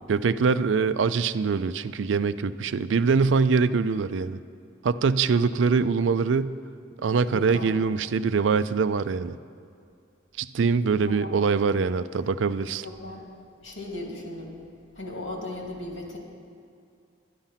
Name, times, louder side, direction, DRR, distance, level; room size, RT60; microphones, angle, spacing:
voice 1, 0.1-4.4 4.8-6.5 7.0-9.4 10.4-12.9, right 5 dB, 75° right, 14 dB, 0.4 m, -23 dB
voice 2, 7.3-7.7 11.0-11.5 12.1-12.2 12.8-13.2 13.6-14.6 14.9-16.2, left 2 dB, 85° left, 0 dB, 2.6 m, -37 dB
11.5 x 10.5 x 5.7 m, 2.4 s
head